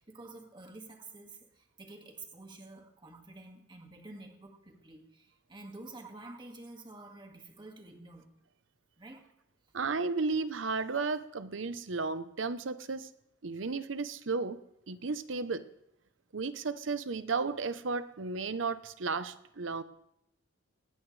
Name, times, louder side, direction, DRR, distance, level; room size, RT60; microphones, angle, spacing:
voice 1, 0.0-8.3 9.0-9.2, right 2 dB, 25° right, 3 dB, 2.0 m, -49 dB
voice 2, 9.7-13.1 13.4-14.6 14.9-15.6 16.3-19.8, right 4 dB, 85° right, 13 dB, 0.8 m, -34 dB
20.0 x 16.0 x 3.3 m, 0.81 s
head